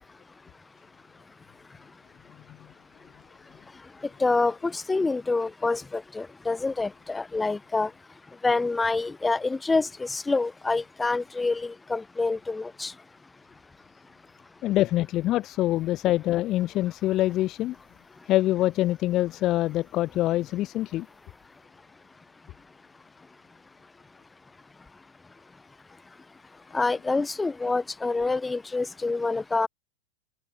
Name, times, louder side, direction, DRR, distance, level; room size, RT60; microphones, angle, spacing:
voice 1, 4.2-7.9 8.4-12.9 26.7-29.7, left 3 dB, 10° left, 0.8 m, -27 dB
voice 2, 14.6-17.7 18.3-21.1, left 15 dB, 35° left, 1.2 m, -25 dB
open air
figure-of-eight pair, 90°, 0 cm